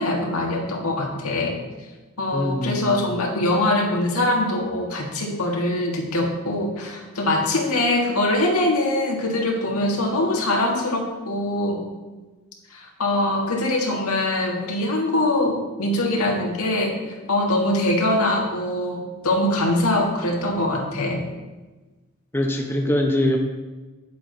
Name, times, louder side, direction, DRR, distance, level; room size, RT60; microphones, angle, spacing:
voice 1, 0.0-1.6 2.2-11.8 12.7-17.0 17.3-21.2, left 1 dB, 90° left, 0 dB, 1.7 m, -23 dB
voice 2, 2.3-3.2 22.3-23.4, left 1 dB, 10° left, 1 dB, 0.8 m, -23 dB
8.9 x 7.6 x 3.9 m, 1.2 s
head